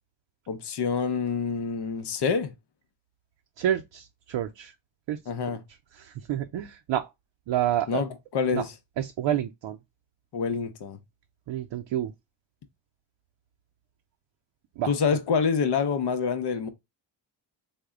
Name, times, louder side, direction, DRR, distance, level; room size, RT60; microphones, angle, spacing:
voice 1, 0.5-2.5 5.3-5.6 7.9-8.7 10.3-11.0 14.9-16.7, left 6 dB, 55° left, 0.8 m, -27 dB
voice 2, 3.6-4.7 5.1-5.2 5.5-5.6 5.9-7.1 7.5-8.0 8.5-8.6 9.0-9.8 11.5-12.1 14.8-14.9, right 11 dB, 65° right, 0.5 m, -29 dB
3.4 x 2.2 x 3.5 m
cardioid pair, 55°, 47 cm